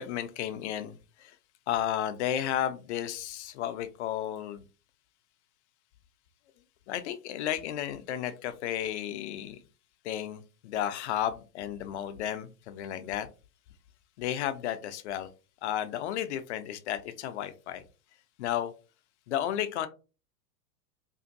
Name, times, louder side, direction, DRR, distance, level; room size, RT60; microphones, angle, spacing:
voice 1, 0.0-1.3 1.7-4.6 6.9-9.6 10.0-13.3 14.2-15.3 15.6-17.8 18.4-18.7 19.3-19.9, left 11 dB, 50° left, 11 dB, 0.4 m, -33 dB
2.6 x 2.4 x 2.6 m, 0.32 s
figure-of-eight pair, 85°, 48 cm